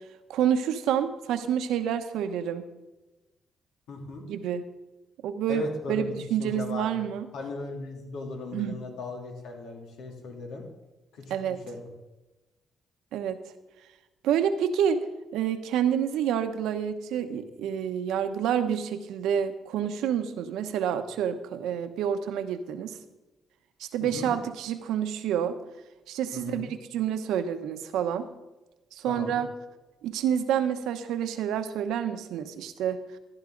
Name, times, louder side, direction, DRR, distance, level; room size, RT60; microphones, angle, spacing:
voice 1, 0.3-2.6 4.3-4.6 5.2-7.3 8.5-8.8 11.3-11.6 13.1-13.4 14.2-15.0 15.3-23.0 23.8-25.6 26.1-28.3 28.9-29.5 30.0-33.2, right 9 dB, 90° right, 9 dB, 0.9 m, -28 dB
voice 2, 3.9-4.2 5.5-6.9 7.3-10.6 11.1-11.9 24.0-24.3 26.3-26.6 29.0-29.4, left 3 dB, 90° left, 0 dB, 3.0 m, -38 dB
15.0 x 11.0 x 3.9 m, 1.1 s
cardioid pair, 90°, 0 cm